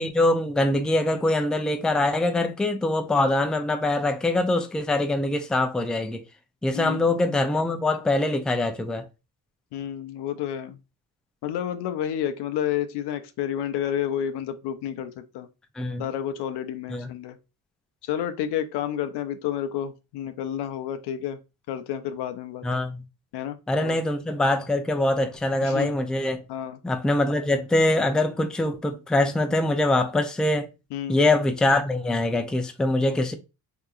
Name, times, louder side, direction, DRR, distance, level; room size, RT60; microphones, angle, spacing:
voice 1, 0.0-6.2 6.6-9.0 15.8-16.0 16.9-17.1 22.6-23.0 23.7-26.4 26.8-30.7 31.1-33.3, left 2 dB, ahead, 0.3 m, -23 dB
voice 2, 6.7-7.1 9.7-10.8 11.4-15.5 16.0-17.4 18.0-21.4 21.7-22.6 23.3-24.0 25.6-25.9 26.5-26.8 30.9-31.3, left 10 dB, 85° left, 0.6 m, -30 dB
3.6 x 2.8 x 2.4 m
cardioid pair, 80°, 39 cm